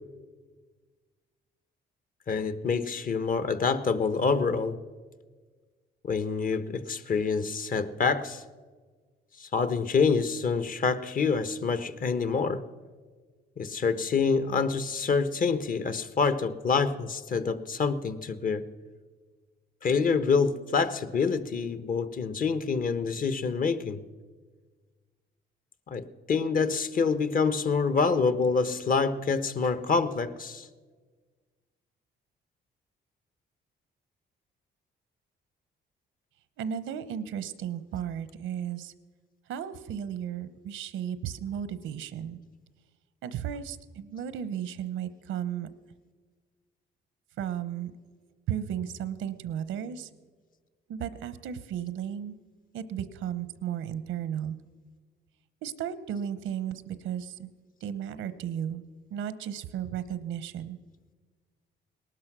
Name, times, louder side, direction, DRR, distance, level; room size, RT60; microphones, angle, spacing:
voice 1, 2.3-4.8 6.0-8.4 9.4-12.6 13.6-18.7 19.8-24.0 25.9-30.7, left 5 dB, 45° left, 14 dB, 0.9 m, -27 dB
voice 2, 36.6-38.9 39.5-42.4 43.2-45.7 47.4-47.9 48.5-50.1 50.9-52.3 52.7-54.6 55.6-57.5 57.8-58.8 59.1-60.8, right 9 dB, 85° right, 15 dB, 0.9 m, -34 dB
18.5 x 12.0 x 6.1 m, 1.5 s
cardioid pair, 90°, 20 cm